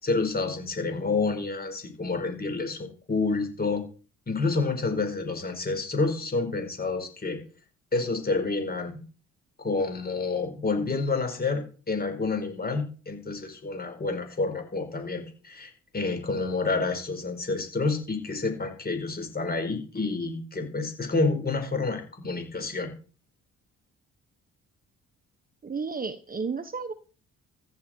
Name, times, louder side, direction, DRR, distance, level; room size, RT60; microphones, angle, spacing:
voice 1, 0.0-3.8 4.3-7.4 7.9-9.0 9.6-22.9, left 3 dB, 30° left, 6 dB, 4.9 m, -29 dB
voice 2, 25.6-26.9, right 5 dB, 30° right, 11 dB, 1.2 m, -32 dB
14.5 x 10.5 x 4.5 m, 0.38 s
cardioid pair, 90°, 30 cm